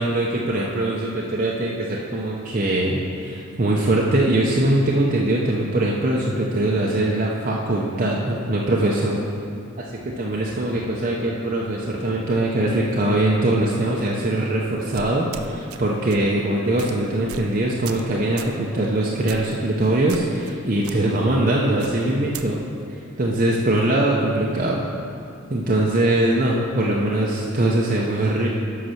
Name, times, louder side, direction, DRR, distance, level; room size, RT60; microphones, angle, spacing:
voice 1, 0.0-9.2 9.8-22.6 23.2-24.8 25.5-28.5, right 1 dB, 35° right, -4 dB, 0.7 m, -22 dB
sound 1, 14.9-15.8 16.1-16.3 16.8-16.9 17.3-17.5 17.8-18.1 18.4-18.6 19.3-19.6 20.1-20.5 20.8-21.0 21.8-22.5, right 7 dB, 80° right, 0.5 m, -37 dB
8.0 x 5.8 x 5.7 m, 2.4 s
head